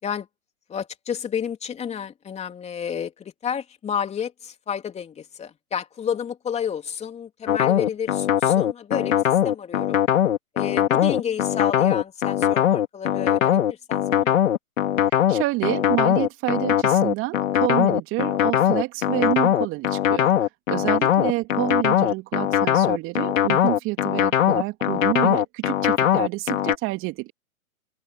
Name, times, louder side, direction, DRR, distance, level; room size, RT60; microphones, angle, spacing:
voice 1, 0.7-10.0 10.5-14.4 20.9-21.1, left 8 dB, 15° left, 3.3 m, -31 dB
sound 1, 7.5-26.7, left 11 dB, 60° left, 2.6 m, -20 dB
voice 2, 15.3-20.3 20.7-27.3, right 20 dB, 30° right, 2.7 m, -28 dB
hypercardioid pair, 130°, 43 cm